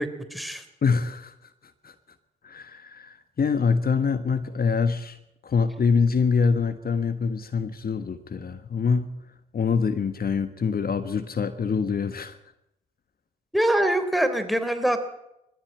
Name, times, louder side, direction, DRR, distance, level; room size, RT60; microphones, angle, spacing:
voice 1, 0.0-0.6 13.5-15.0, right 1 dB, ahead, 3.4 m, -24 dB
voice 2, 0.8-1.3 1.8-1.9 2.4-5.2 5.4-9.1 9.5-12.4, left 5 dB, 45° left, 1.5 m, -25 dB
20.5 x 14.5 x 9.0 m
hypercardioid pair, 45°, 21 cm